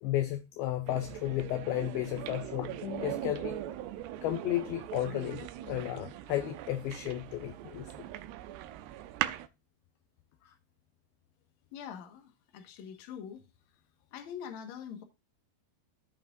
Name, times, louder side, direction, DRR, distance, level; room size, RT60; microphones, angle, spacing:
voice 1, 0.0-3.6 4.2-7.9, left 14 dB, 80° left, 2.2 m, -33 dB
sound 1, 0.9-9.5, right 13 dB, 80° right, 2.5 m, -40 dB
voice 2, 11.7-13.5 14.1-15.0, left 8 dB, 60° left, 1.9 m, -44 dB
15.5 x 5.7 x 2.6 m
omnidirectional pair, 5.1 m